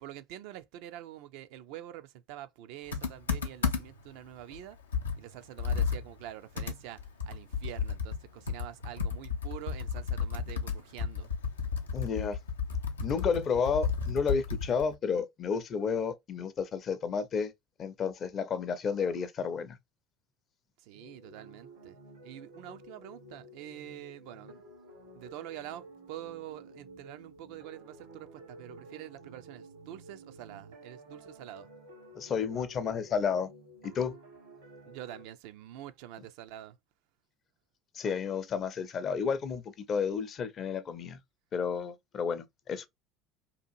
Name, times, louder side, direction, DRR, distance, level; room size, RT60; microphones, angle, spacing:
voice 1, 0.0-4.8 5.2-11.3 20.8-22.0 22.2-24.6 25.1-31.7 34.9-36.8, right 13 dB, 65° right, 0.3 m, -46 dB
Computer keyboard, 2.9-4.1 4.5-4.6 4.9-8.2 8.5-14.9, left 6 dB, 90° left, 0.5 m, -33 dB
voice 2, 11.9-12.4 13.0-17.5 17.8-19.8 32.2-33.5 33.8-34.1 37.9-41.2 41.5-42.9, left 6 dB, 45° left, 0.5 m, -31 dB
sound 1, 20.9-35.2, right 1 dB, 85° right, 1.3 m, -52 dB
2.7 x 2.4 x 2.6 m
hypercardioid pair, 75°, 0 cm